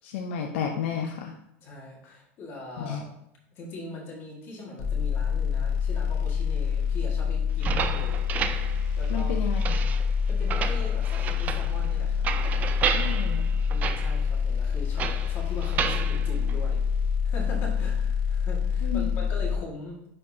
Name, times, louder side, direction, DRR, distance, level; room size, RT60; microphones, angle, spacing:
voice 1, 0.0-1.3 2.8-3.0 9.1-9.6 12.9-13.6 18.8-19.1, left 8 dB, 75° left, 2 dB, 0.7 m, -32 dB
voice 2, 1.6-3.1 3.5-8.2 9.0-9.3 10.3-12.3 12.8-12.9 13.7-16.8 17.2-20.0, left 2 dB, 35° left, -2 dB, 1.8 m, -41 dB
sound 1, 4.8-19.6, left 7 dB, 55° left, 1.2 m, -26 dB
sound 2, 7.5-17.2, right 7 dB, 25° right, 0.3 m, -32 dB
9.7 x 4.4 x 2.8 m, 0.77 s
supercardioid pair, 160°, 7 cm